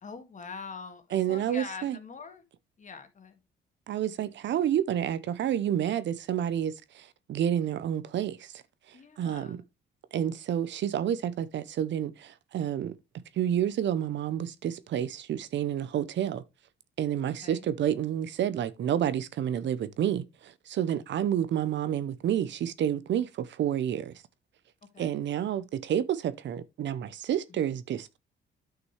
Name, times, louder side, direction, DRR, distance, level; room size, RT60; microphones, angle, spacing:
voice 1, 0.0-2.4 2.8-3.4 8.9-9.6 17.4-17.7 24.9-25.3 27.5-27.7, left 5 dB, 40° left, 2.0 m, -44 dB
voice 2, 1.1-2.0 3.9-8.5 9.2-9.6 10.1-12.9 13.4-16.4 17.0-24.1 25.0-28.2, right 10 dB, 65° right, 0.8 m, -29 dB
9.7 x 5.9 x 3.2 m
cardioid pair, 90°, 20 cm